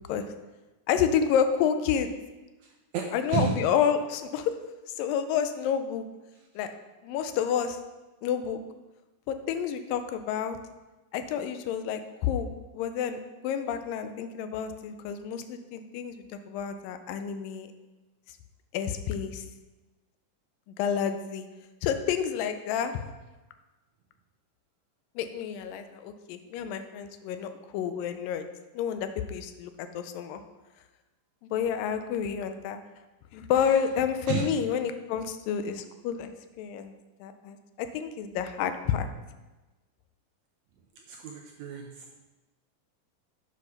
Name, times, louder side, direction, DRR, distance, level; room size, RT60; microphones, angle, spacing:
voice 1, 0.9-2.1 3.1-4.6 4.9-6.0 6.6-6.7 7.0-7.8 8.2-8.6 9.3-10.6 11.1-17.7 18.7-19.5 20.8-21.5 21.8-23.0 25.2-28.5 28.7-30.4 31.4-32.8 33.3-36.3 36.6-36.9 37.2-39.1, left 8 dB, 85° left, 9 dB, 2.3 m, -29 dB
voice 2, 2.6-3.7 34.3-34.5 41.0-42.1, right 6 dB, 75° right, 1 dB, 1.7 m, -32 dB
7.6 x 4.9 x 5.8 m, 1.1 s
omnidirectional pair, 3.9 m